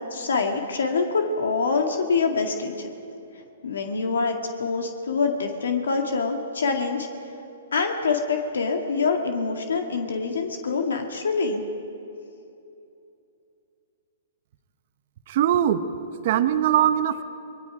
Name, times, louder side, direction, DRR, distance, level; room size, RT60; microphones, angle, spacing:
voice 1, 0.1-2.9 3.6-7.1 7.7-11.6, left 4 dB, 85° left, 4 dB, 2.1 m, -25 dB
voice 2, 15.3-15.8 16.2-17.2, right 10 dB, 55° right, 10 dB, 1.2 m, -21 dB
27.0 x 20.5 x 5.0 m, 2.7 s
hypercardioid pair, 135°, 0 cm